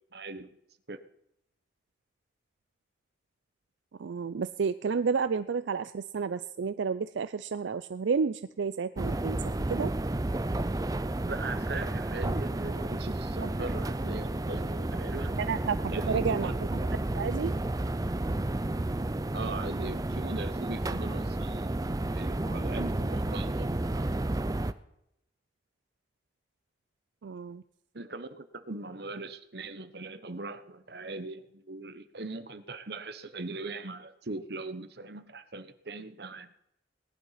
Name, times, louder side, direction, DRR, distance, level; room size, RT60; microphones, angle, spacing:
voice 1, 0.1-0.5 0.9-1.0 11.3-15.3 15.9-16.5 19.3-24.0 27.9-36.5, right 3 dB, 60° right, 12 dB, 1.0 m, -40 dB
voice 2, 4.0-9.9 13.4-13.5 15.3-16.5 17.2-17.5 27.2-27.6, right 5 dB, 80° right, 13 dB, 0.4 m, -31 dB
sound 1, 9.0-24.7, right 1 dB, 20° right, 0.5 m, -31 dB
18.0 x 11.0 x 5.8 m, 0.81 s
head